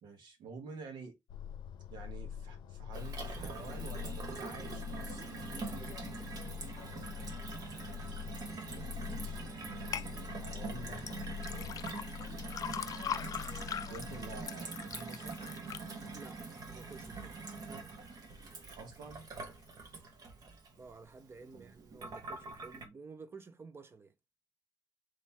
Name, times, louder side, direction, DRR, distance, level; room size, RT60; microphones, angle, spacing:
voice 1, 0.0-1.2 1.9-5.3 8.7-9.5 9.8-11.1 13.8-15.4 18.7-19.3 19.8-19.9 21.5-21.7, right 4 dB, 85° right, 1.5 m, -49 dB
sound 1, 1.3-14.4, left 8 dB, 90° left, 0.7 m, -45 dB
Gurgling / Water tap faucet / Sink (filling or washing), 2.9-22.8, right 4 dB, 55° right, 1.3 m, -44 dB
voice 2, 5.5-6.7 16.1-17.4 20.8-24.1, right 4 dB, 30° right, 0.7 m, -52 dB
sound 2, 9.9-10.1 11.0-17.1 17.6-18.1 18.6-18.7, left 8 dB, 50° left, 0.4 m, -41 dB
4.0 x 3.2 x 4.2 m
cardioid pair, 120°, 8 cm